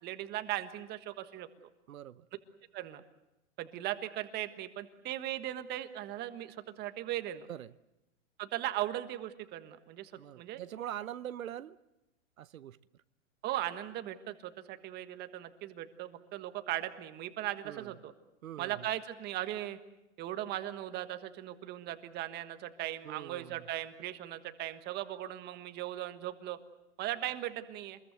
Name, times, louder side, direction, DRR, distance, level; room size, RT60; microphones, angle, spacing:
voice 1, 0.0-1.5 2.7-3.0 3.6-7.5 8.4-10.1 10.4-10.6 13.4-18.1 18.6-19.8 20.2-26.6 27.0-28.0, right 13 dB, 25° right, 1.4 m, -38 dB
voice 2, 1.9-2.3 7.5-7.7 10.2-11.8 12.4-12.8 17.6-17.9 18.4-18.8 23.0-23.6, right 11 dB, 85° right, 0.9 m, -43 dB
27.0 x 21.5 x 8.1 m
hypercardioid pair, 145°, 40 cm